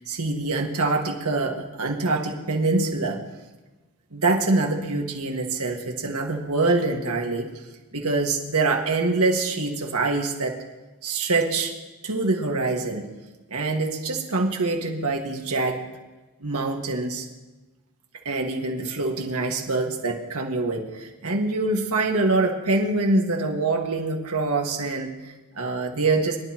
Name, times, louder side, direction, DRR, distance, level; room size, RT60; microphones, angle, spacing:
voice 1, 0.0-3.2 4.1-7.5 7.9-10.6 11.0-11.7 12.0-13.1 13.5-15.9 16.4-17.3 18.3-26.4, right 3 dB, 85° right, 2 dB, 1.9 m, -25 dB
24.0 x 12.0 x 3.0 m, 1.2 s
head